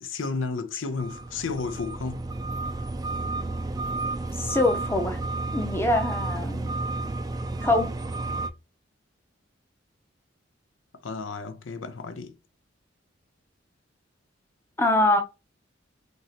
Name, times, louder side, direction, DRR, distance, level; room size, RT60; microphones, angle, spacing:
voice 1, 0.0-2.2 11.0-12.3, left 4 dB, 85° left, 0.6 m, -32 dB
sound 1, 1.0-8.5, right 2 dB, 20° right, 0.3 m, -31 dB
voice 2, 4.4-5.2 5.5-6.7 7.6-8.0 14.8-15.2, left 2 dB, 15° left, 0.7 m, -23 dB
5.2 x 3.0 x 2.9 m
head